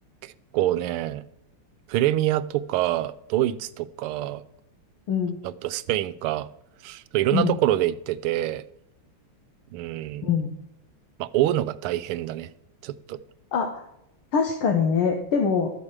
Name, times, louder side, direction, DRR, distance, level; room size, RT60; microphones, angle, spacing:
voice 1, 0.2-1.2 1.9-4.4 5.4-6.5 6.8-8.6 9.7-10.3 11.2-12.5 12.8-13.2, right 14 dB, 85° right, 14 dB, 1.5 m, -26 dB
voice 2, 5.1-5.4 7.3-7.6 10.2-10.5 13.5-13.8 14.3-15.7, left 6 dB, 75° left, 3 dB, 2.0 m, -23 dB
13.5 x 4.8 x 8.7 m, 0.83 s
omnidirectional pair, 2.4 m